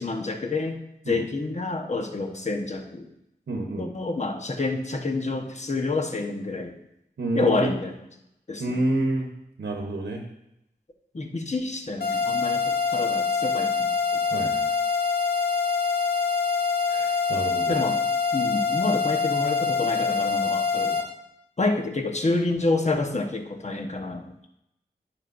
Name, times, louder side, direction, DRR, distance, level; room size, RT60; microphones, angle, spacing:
voice 1, 0.0-3.1 3.8-6.7 7.3-8.0 8.5-8.8 11.1-14.2 17.7-18.0 18.3-21.0 21.6-24.3, left 3 dB, 40° left, 4 dB, 1.1 m, -28 dB
voice 2, 3.5-3.9 7.2-7.7 8.6-9.3 9.6-10.2 14.3-14.7 16.9-17.8, right 1 dB, 75° right, 2 dB, 1.0 m, -28 dB
sound 1, 12.0-21.0, left 5 dB, 60° left, 1.1 m, -25 dB
9.8 x 6.2 x 2.6 m, 0.82 s
cardioid pair, 45°, 18 cm